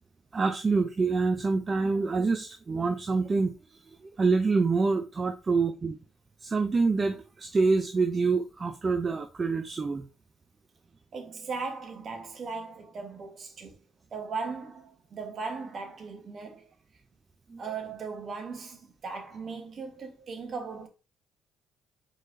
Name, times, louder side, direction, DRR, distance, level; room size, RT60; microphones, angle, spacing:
voice 1, 0.3-3.5 3.9-6.0 6.4-10.0 17.5-17.6, right 4 dB, 35° right, 0.6 m, -26 dB
voice 2, 11.1-13.7 14.1-16.7 17.6-20.9, right 4 dB, 50° right, 1.4 m, -38 dB
4.7 x 3.9 x 2.7 m
hypercardioid pair, 50°, 0 cm